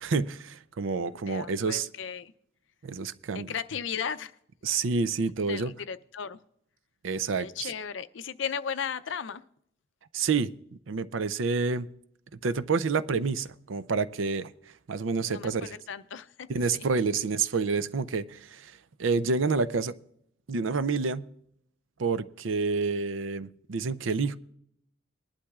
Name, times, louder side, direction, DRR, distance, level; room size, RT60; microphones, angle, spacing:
voice 1, 0.0-1.9 2.8-3.5 4.6-5.7 7.0-7.7 10.1-10.5 10.9-11.9 12.4-14.5 14.9-15.8 16.5-19.9 20.5-21.3 22.0-24.4, right 4 dB, 75° right, 0.5 m, -28 dB
voice 2, 1.1-2.3 3.3-4.4 5.5-6.4 7.4-9.4 15.3-16.5 16.7-16.8, left 7 dB, 65° left, 0.5 m, -36 dB
20.5 x 11.5 x 2.4 m
head